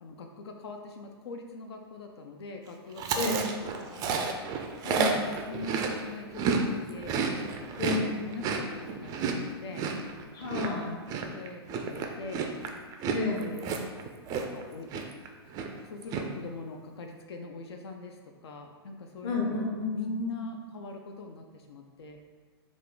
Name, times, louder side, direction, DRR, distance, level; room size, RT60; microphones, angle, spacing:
voice 1, 0.0-4.3 4.8-7.2 7.5-9.8 11.3-12.5 13.4-13.8 14.3-14.9 15.8-22.2, left 2 dB, 70° left, 3 dB, 0.4 m, -42 dB
Chewing mastication, 3.0-6.6 6.9-14.6 14.9-15.3 15.5-16.2, right 5 dB, 25° right, 0.3 m, -31 dB
voice 2, 4.8-5.2 7.8-8.1 10.3-11.1 13.1-13.5 19.2-20.4, left 3 dB, 30° left, -1 dB, 0.7 m, -31 dB
3.5 x 2.4 x 3.7 m, 1.5 s
hypercardioid pair, 115°, 14 cm